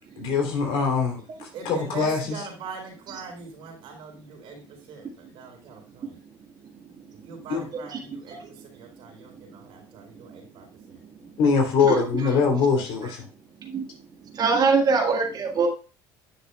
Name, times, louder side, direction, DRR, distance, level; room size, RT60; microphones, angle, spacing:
voice 1, 0.2-1.2 1.6-2.2 7.5-7.6 11.4-13.2, left 5 dB, 65° left, 2 dB, 3.1 m, -22 dB
voice 2, 1.5-6.2 7.2-11.0 14.3-14.4, right 5 dB, 65° right, 1 dB, 4.3 m, -42 dB
voice 3, 14.2-15.7, right 4 dB, 45° right, 2 dB, 1.6 m, -24 dB
10.5 x 6.5 x 2.3 m, 0.34 s
supercardioid pair, 80°, 10 cm